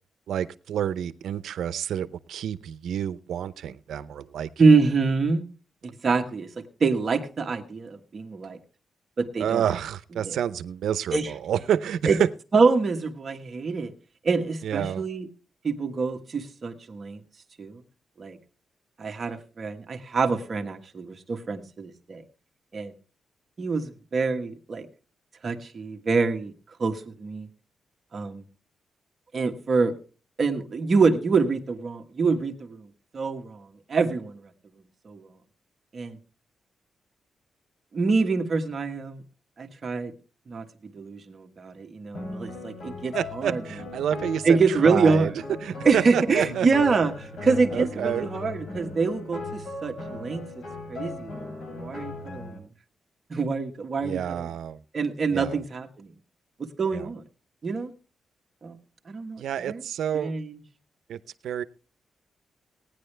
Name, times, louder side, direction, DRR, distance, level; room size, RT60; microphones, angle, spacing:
voice 1, 0.3-4.5 9.4-12.3 14.6-15.1 43.1-45.3 45.6-46.7 47.7-48.3 54.0-54.8 55.3-55.6 56.9-57.1 59.4-60.3 61.1-61.2 61.4-61.6, right 9 dB, 85° right, 0.7 m, -29 dB
voice 2, 4.6-5.4 5.8-8.6 9.2-9.6 10.2-10.4 11.1-11.3 12.1-12.2 12.5-13.9 14.2-15.3 15.6-17.2 17.6-17.8 18.2-18.4 19.0-22.2 22.7-22.9 23.6-24.9 25.4-26.5 26.8-27.5 28.1-28.4 29.3-29.9 30.4-32.9 33.1-34.5 35.0-35.3 35.9-36.2 37.9-39.2 39.6-40.1 40.5-43.6 44.4-45.3 45.8-50.4 50.9-52.7 53.3-54.5 54.9-56.1 56.8-57.2 57.6-57.9 58.6-58.8 59.1-59.8 60.1-60.6, right 4 dB, 35° right, 1.4 m, -25 dB
sound 1, 42.1-52.6, left 3 dB, 75° left, 7.3 m, -38 dB
18.0 x 9.9 x 3.3 m
wide cardioid pair, 165°, 0 cm